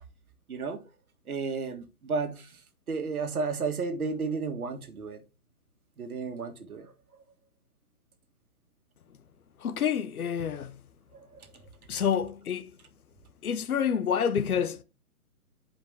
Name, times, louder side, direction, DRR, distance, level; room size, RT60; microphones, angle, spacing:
voice 1, 0.5-0.8 1.3-2.6 2.9-5.2 6.0-6.9 11.1-11.5, right 4 dB, 75° right, 1.6 m, -33 dB
voice 2, 9.6-10.7 11.9-12.7 13.4-14.8, left 8 dB, 75° left, 0.9 m, -28 dB
7.8 x 5.1 x 3.5 m
hypercardioid pair, 165°, 45 cm